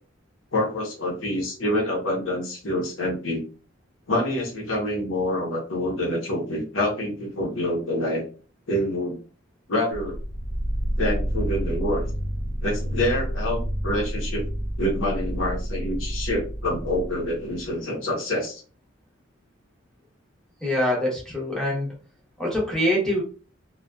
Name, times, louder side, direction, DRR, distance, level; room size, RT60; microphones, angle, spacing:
voice 1, 0.5-3.4 4.1-8.3 8.7-9.2 9.7-10.2 11.0-12.0 12.6-14.4 14.8-18.6, left 1 dB, 85° left, 0 dB, 0.9 m, -26 dB
sound 1, 9.9-17.7, equal, 70° left, 0.5 m, -29 dB
voice 2, 20.6-21.9 22.4-23.2, left 1 dB, 5° left, -3 dB, 0.8 m, -24 dB
2.6 x 2.3 x 2.2 m, 0.36 s
head